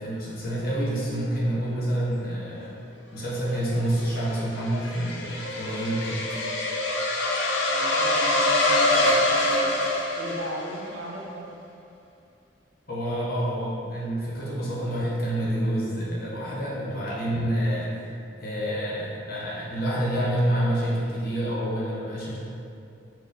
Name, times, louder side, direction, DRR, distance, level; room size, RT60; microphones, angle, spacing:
voice 1, 0.0-2.8 3.1-6.2 12.9-17.9 18.4-22.4, right 1 dB, 50° left, -6 dB, 0.7 m, -28 dB
sound 1, 3.8-10.9, left 1 dB, 70° left, 0.4 m, -25 dB
voice 2, 7.7-9.8 10.2-11.5, right 1 dB, 85° right, -3 dB, 0.6 m, -37 dB
4.5 x 2.0 x 2.6 m, 2.6 s
head